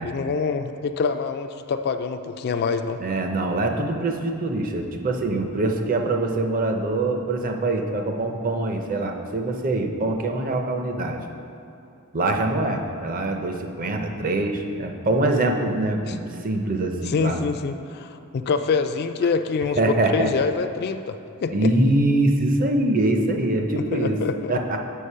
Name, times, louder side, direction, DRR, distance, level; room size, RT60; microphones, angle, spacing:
voice 1, 0.0-3.0 16.1-16.2 17.0-21.7 23.8-24.5, left 5 dB, 45° left, 8 dB, 0.3 m, -26 dB
voice 2, 3.0-11.2 12.1-17.4 19.8-20.3 21.5-24.2 24.5-24.8, right 2 dB, 40° right, 4 dB, 0.6 m, -24 dB
6.5 x 5.2 x 5.5 m, 2.8 s
head